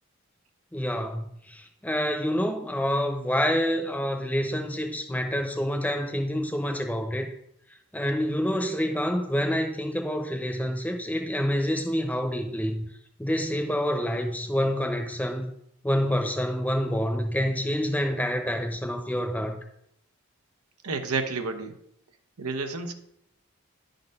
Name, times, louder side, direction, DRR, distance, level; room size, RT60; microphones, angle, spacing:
voice 1, 0.7-1.3 1.5-7.3 7.9-12.8 13.2-15.5 15.8-19.6, equal, 5° left, 0.8 m, -27 dB
voice 2, 20.8-21.7 22.4-22.9, right 4 dB, 85° right, 0.9 m, -30 dB
10.5 x 4.0 x 5.4 m
head